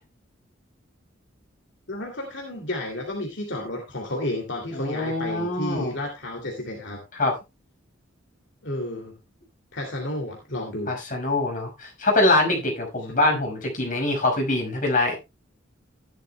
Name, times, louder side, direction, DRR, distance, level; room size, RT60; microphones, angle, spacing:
voice 1, 1.9-7.0 8.6-9.2 9.7-10.9, left 1 dB, 65° left, 2.6 m, -31 dB
voice 2, 4.7-5.9 7.1-7.4 10.9-15.2, left 2 dB, 45° left, 5.4 m, -24 dB
15.0 x 11.0 x 2.2 m
head